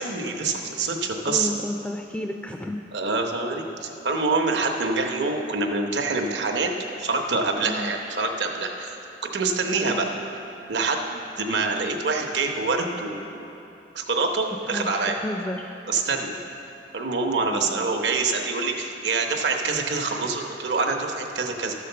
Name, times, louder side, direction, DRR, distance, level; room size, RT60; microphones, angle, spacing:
voice 1, 0.0-1.5 2.9-6.7 7.0-9.0 9.3-10.1 10.7-13.4 13.9-15.2 15.9-16.3 16.9-21.7, right 3 dB, 75° right, 2 dB, 0.9 m, -26 dB
voice 2, 1.2-2.8 7.6-7.9 9.7-10.1 14.6-15.7 17.5-17.8, left 1 dB, 10° left, 3 dB, 0.3 m, -32 dB
12.5 x 5.0 x 6.8 m, 2.9 s
head